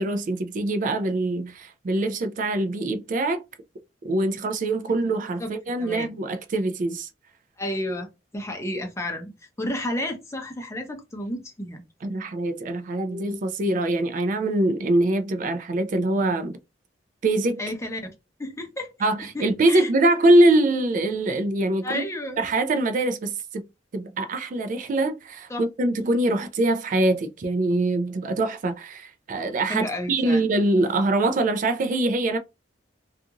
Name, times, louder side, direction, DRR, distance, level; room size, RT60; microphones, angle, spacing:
voice 1, 0.0-3.4 4.0-7.1 12.0-16.6 17.2-17.6 19.0-22.0 22.4-23.6 23.9-32.4, right 2 dB, 45° right, 0.4 m, -23 dB
voice 2, 5.8-6.1 7.6-9.3 9.6-11.8 17.6-18.1 18.4-18.9 19.3-19.9 21.8-22.4 25.5-25.6 29.7-30.4, left 1 dB, 15° left, 0.6 m, -31 dB
2.5 x 2.4 x 2.8 m
head